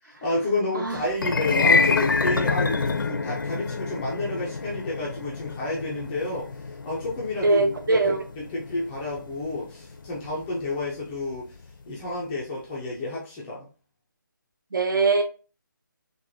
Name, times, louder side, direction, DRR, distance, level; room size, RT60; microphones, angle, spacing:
voice 1, 0.0-6.5 6.8-11.6 11.9-13.7, left 2 dB, 5° left, 0.3 m, -30 dB
sound 1, 1.1-11.4, left 4 dB, 75° left, 0.5 m, -27 dB
voice 2, 7.4-8.2 14.7-15.2, right 3 dB, 70° right, 1.0 m, -21 dB
4.7 x 2.2 x 2.5 m
figure-of-eight pair, 165°, 11 cm